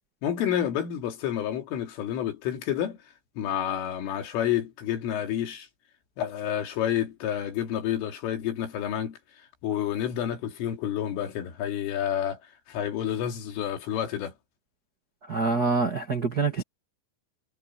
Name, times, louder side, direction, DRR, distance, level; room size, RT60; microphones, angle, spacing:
voice 1, 0.2-3.0 3.4-5.7 6.2-12.4 12.7-14.3, left 10 dB, 80° left, 5.5 m, -29 dB
voice 2, 15.3-16.6, right 4 dB, 50° right, 1.1 m, -25 dB
omnidirectional pair, 5.7 m